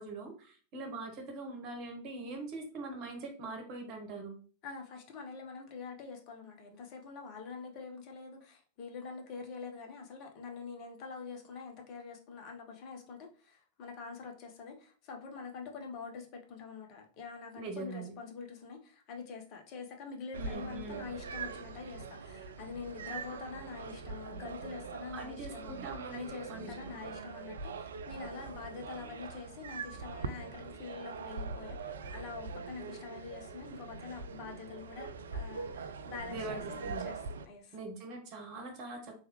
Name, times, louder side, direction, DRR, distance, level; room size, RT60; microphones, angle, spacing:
voice 1, 0.0-4.4 17.6-18.1 20.3-21.1 25.1-27.0 36.3-37.1 37.7-39.1, right 3 dB, 40° right, 1.1 m, -43 dB
voice 2, 4.6-25.8 26.1-37.8, left 5 dB, 40° left, 0.8 m, -45 dB
sound 1, 20.3-37.5, right 4 dB, 65° right, 0.3 m, -43 dB
3.4 x 3.2 x 3.1 m
figure-of-eight pair, 90°, 0 cm